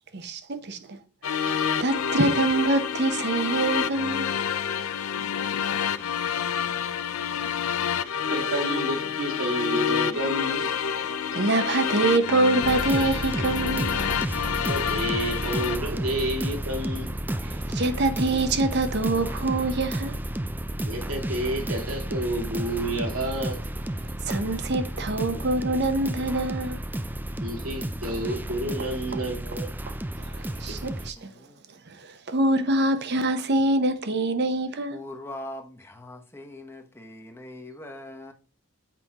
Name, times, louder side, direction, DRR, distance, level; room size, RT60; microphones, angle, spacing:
voice 1, 0.2-1.0 1.3-4.4 11.0-14.0 17.4-20.2 24.2-26.8 30.2-31.3 31.9-35.0, right 2 dB, 50° right, 0.7 m, -25 dB
sound 1, 1.2-15.8, left 8 dB, 80° left, 0.5 m, -28 dB
voice 2, 8.3-10.7 11.3-11.7 14.7-17.1 20.9-23.6 27.4-29.7, right 1 dB, 75° right, 2.1 m, -30 dB
sound 2, 12.6-31.1, right 1 dB, 10° right, 0.3 m, -32 dB
voice 3, 31.2-31.6 34.9-38.3, left 1 dB, 10° left, 0.9 m, -41 dB
7.6 x 5.1 x 2.9 m
head